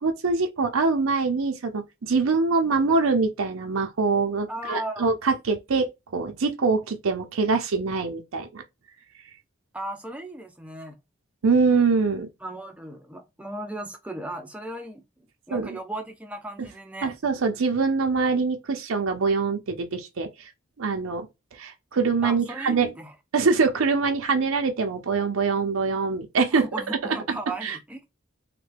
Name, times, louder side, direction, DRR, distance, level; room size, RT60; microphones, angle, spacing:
voice 1, 0.0-5.9 6.1-8.6 11.4-12.3 15.5-15.8 17.0-20.5 20.8-22.9 23.3-26.6 27.6-27.8, right 4 dB, 85° right, 0.6 m, -24 dB
voice 2, 4.5-5.1 9.7-11.0 12.4-15.0 15.5-17.1 22.2-23.1 26.5-28.1, right 1 dB, 5° right, 0.4 m, -36 dB
3.2 x 2.2 x 3.3 m
head